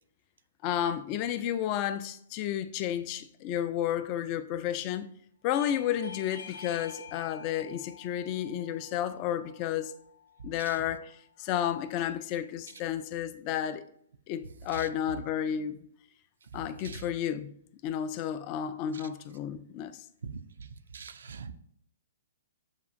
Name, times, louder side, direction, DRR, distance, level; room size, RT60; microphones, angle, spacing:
voice 1, 0.6-5.1 5.4-9.9 10.4-11.1 11.4-13.8 14.3-15.8 16.5-17.5 17.8-20.0, left 10 dB, 35° left, 0.3 m, -32 dB
Bell / Doorbell, 5.5-10.7, left 6 dB, 65° left, 0.8 m, -49 dB
voice 2, 20.2-20.7 20.9-21.5, right 5 dB, 75° right, 0.4 m, -42 dB
7.1 x 2.4 x 2.6 m
hypercardioid pair, 135°, 0 cm